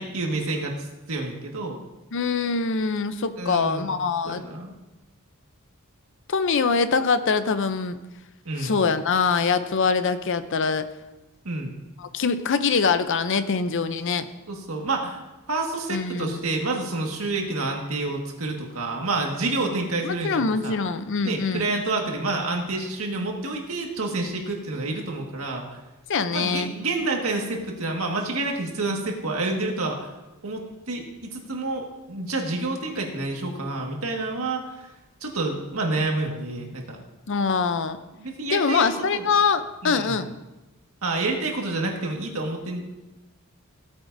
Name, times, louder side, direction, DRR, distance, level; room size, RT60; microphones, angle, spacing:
voice 1, 0.0-1.8 3.4-3.9 4.3-4.7 8.5-8.8 11.5-11.8 14.5-15.2 15.5-20.4 20.6-20.8 21.2-25.7 26.3-30.1 30.4-34.9 35.2-37.0 38.2-39.3 39.8-40.2 41.0-43.0, right 2 dB, 80° right, 1 dB, 1.7 m, -28 dB
voice 2, 2.1-4.4 6.3-8.0 8.6-10.9 12.0-14.3 15.9-16.4 20.0-21.7 26.1-26.7 37.3-38.0 38.5-40.3, left 5 dB, 60° left, 11 dB, 0.6 m, -24 dB
16.0 x 8.7 x 2.7 m, 1.0 s
head